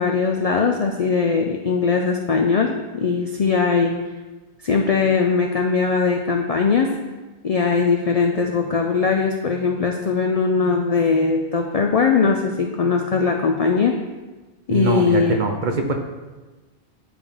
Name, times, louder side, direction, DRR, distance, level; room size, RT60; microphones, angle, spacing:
voice 1, 0.0-4.0 4.6-6.9 7.4-13.9 14.7-15.4, left 5 dB, 60° left, 2 dB, 0.4 m, -20 dB
voice 2, 14.7-15.9, right 4 dB, 55° right, 4 dB, 0.6 m, -23 dB
9.9 x 3.4 x 3.6 m, 1.2 s
omnidirectional pair, 1.1 m